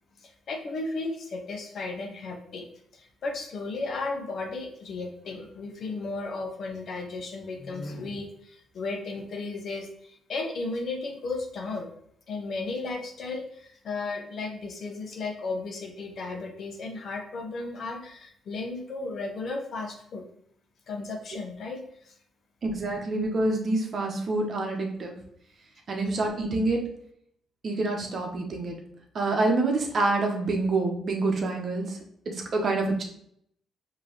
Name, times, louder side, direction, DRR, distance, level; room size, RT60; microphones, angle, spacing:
voice 1, 0.2-2.7 2.9-11.9 12.3-20.2 20.9-22.1, left 3 dB, 55° left, 2 dB, 0.9 m, -34 dB
voice 2, 22.6-25.1 25.9-26.9 27.6-28.7 29.1-32.0 32.3-33.0, right 2 dB, 50° right, 2 dB, 1.0 m, -27 dB
5.1 x 3.0 x 3.0 m, 0.68 s
cardioid pair, 90°, 0 cm